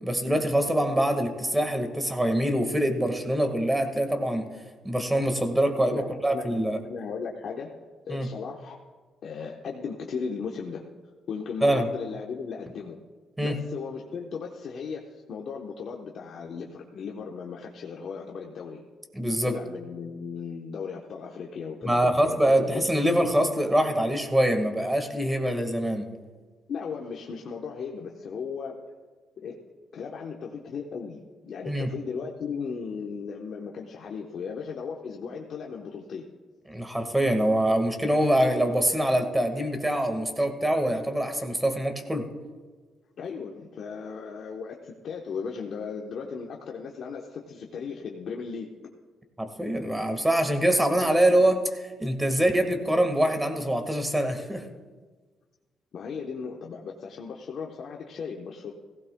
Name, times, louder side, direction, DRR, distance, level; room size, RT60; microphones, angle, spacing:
voice 1, 0.0-4.5 4.8-6.8 8.1-8.3 11.6-11.9 13.4-13.6 19.1-19.6 21.8-26.1 31.7-31.9 36.7-42.3 49.4-54.7, right 1 dB, 10° right, 6 dB, 1.6 m, -24 dB
voice 2, 5.9-6.5 6.9-7.7 8.1-8.8 9.2-10.8 11.3-13.0 13.4-18.8 19.4-22.9 26.7-28.8 29.4-29.5 29.9-36.3 43.2-48.7 55.9-58.7, left 5 dB, 65° left, 0 dB, 1.0 m, -36 dB
17.0 x 16.0 x 2.2 m, 1.4 s
cardioid pair, 90°, 0 cm